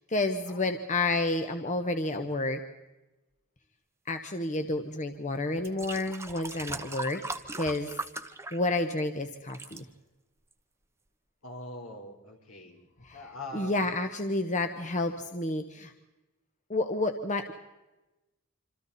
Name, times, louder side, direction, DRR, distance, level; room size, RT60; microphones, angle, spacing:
voice 1, 0.1-2.6 4.1-7.2 7.6-7.9 8.5-9.8 13.1-13.2 13.5-15.9 16.7-17.5, left 2 dB, 35° left, 7 dB, 1.2 m, -30 dB
sound 1, 5.0-5.1 5.6-9.1 9.3-9.8 10.5-10.6, right 3 dB, 10° right, 1.0 m, -39 dB
voice 2, 11.4-13.9, left 1 dB, 75° left, 2 dB, 4.4 m, -43 dB
27.0 x 26.5 x 4.2 m, 1.0 s
head